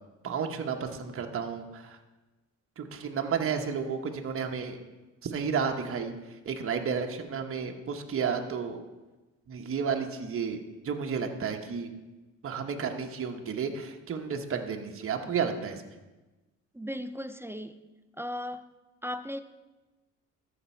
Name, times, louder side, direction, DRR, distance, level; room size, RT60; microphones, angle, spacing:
voice 1, 0.2-2.0 2.8-4.8 5.2-6.1 6.5-8.8 9.5-11.9 12.4-15.8, right 6 dB, 45° right, 3 dB, 1.1 m, -32 dB
voice 2, 16.7-17.9 18.2-18.7 19.0-19.4, equal, 10° right, 10 dB, 0.4 m, -36 dB
13.5 x 5.1 x 4.4 m, 1.1 s
cardioid pair, 90°, 30 cm